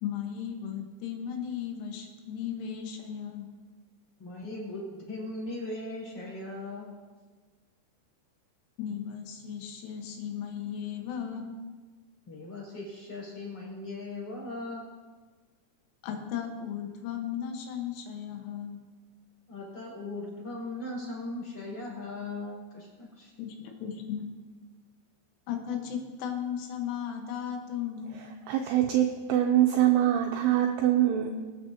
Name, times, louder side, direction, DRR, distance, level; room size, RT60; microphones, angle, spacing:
voice 1, 0.0-3.5 8.8-11.6 16.0-18.8 23.4-24.3 25.5-28.3, left 8 dB, 85° left, 3 dB, 3.8 m, -36 dB
voice 2, 4.2-6.9 12.3-14.8 19.5-23.3, left 2 dB, 30° left, -6 dB, 5.0 m, -38 dB
voice 3, 28.1-31.3, right 11 dB, 90° right, 2 dB, 2.4 m, -24 dB
23.0 x 8.7 x 2.8 m, 1.4 s
omnidirectional pair, 5.6 m